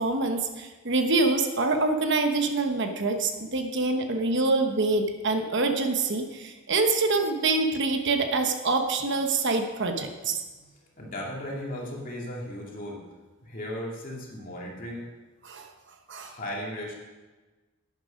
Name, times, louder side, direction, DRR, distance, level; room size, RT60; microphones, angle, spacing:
voice 1, 0.0-10.4 15.4-15.7 16.1-16.3, right 3 dB, 55° right, 5 dB, 1.0 m, -25 dB
voice 2, 10.5-13.0 13.4-15.0 16.2-16.9, left 1 dB, 40° left, -2 dB, 2.5 m, -36 dB
11.5 x 9.6 x 5.2 m, 1.2 s
head